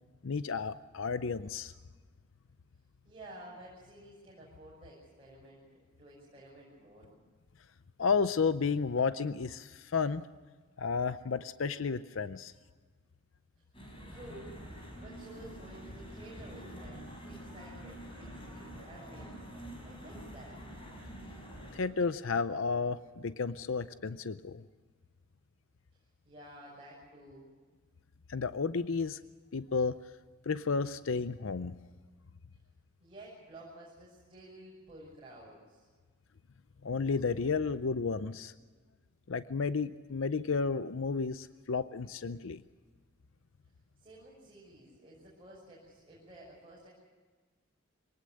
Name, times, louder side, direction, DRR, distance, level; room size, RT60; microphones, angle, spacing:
voice 1, 0.2-1.7 8.0-10.3 10.8-12.5 21.7-24.6 28.3-29.2 29.5-30.0 30.5-31.7 36.8-38.5 39.3-42.6, left 5 dB, 65° left, 13 dB, 0.6 m, -32 dB
voice 2, 3.0-5.6 6.0-7.1 14.1-14.6 15.0-19.4 19.8-20.6 26.2-27.5 33.0-35.9 44.0-46.9, right 1 dB, 25° right, -5 dB, 6.4 m, -52 dB
sound 1, 13.7-21.8, equal, 25° left, 5.6 m, -47 dB
24.0 x 19.0 x 6.5 m, 1.5 s
head